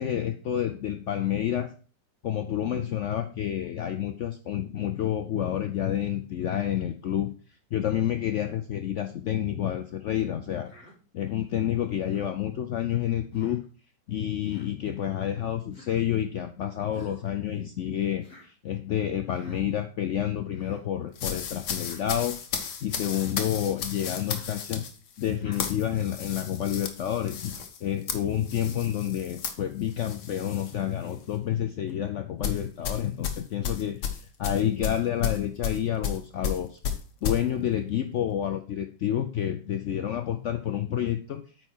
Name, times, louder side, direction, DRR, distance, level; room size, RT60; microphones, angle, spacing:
voice 1, 0.0-1.7 2.2-7.3 7.7-10.7 11.1-13.6 14.1-22.3 22.8-24.8 25.2-27.5 27.8-34.0 34.4-36.8 37.2-41.4, left 10 dB, 85° left, 8 dB, 0.6 m, -29 dB
Human voice, 10.6-10.9 12.0-12.3 13.3-13.6 14.4-14.7 15.7-16.0 16.9-17.3 18.2-18.5 19.3-19.6 20.4-20.8 21.8-22.0 23.0-23.3 24.3-24.6 25.4-25.7, left 2 dB, 30° left, 2.6 m, -51 dB
sound 1, 21.2-30.8 31.1-31.4 32.4-37.4, left 7 dB, 70° left, 1.5 m, -34 dB
8.9 x 4.6 x 4.5 m, 0.38 s
omnidirectional pair, 1.9 m